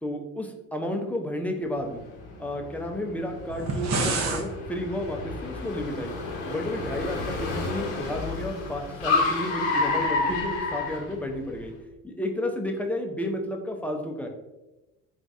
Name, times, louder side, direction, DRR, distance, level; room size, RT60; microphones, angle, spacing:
voice 1, 0.0-2.0 2.4-6.2 6.5-11.7 12.0-14.3, left 1 dB, 5° left, 2 dB, 0.6 m, -32 dB
Car, 1.8-11.6, left 3 dB, 85° left, 0.9 m, -30 dB
sound 1, 3.5-4.5, right 3 dB, 45° right, 0.8 m, -27 dB
3.9 x 2.6 x 3.4 m, 1.0 s
hypercardioid pair, 75°, 38 cm